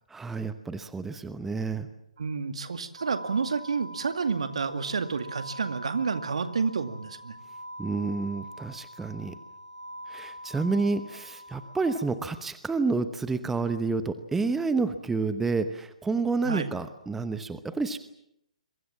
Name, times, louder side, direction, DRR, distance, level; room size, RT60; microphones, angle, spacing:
voice 1, 0.1-1.9 7.8-9.3 10.1-18.0, right 4 dB, 5° right, 11 dB, 1.0 m, -29 dB
voice 2, 2.2-7.4 16.4-16.7, right 5 dB, 60° right, 9 dB, 2.2 m, -30 dB
sound 1, 3.0-12.0, equal, 80° right, 7.6 m, -44 dB
27.0 x 23.5 x 7.3 m, 0.77 s
figure-of-eight pair, 130°, 4 cm